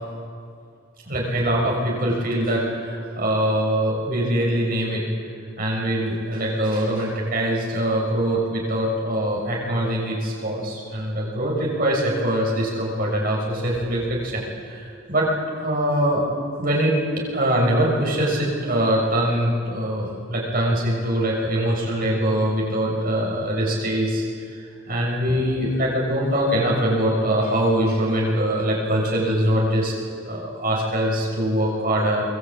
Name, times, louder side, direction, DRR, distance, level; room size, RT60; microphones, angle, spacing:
voice 1, 1.1-5.0 5.6-15.3 15.6-16.2 16.6-24.2 24.6-29.9 30.2-32.2, right 1 dB, 45° right, -3 dB, 6.6 m, -23 dB
24.5 x 20.5 x 8.7 m, 2.3 s
head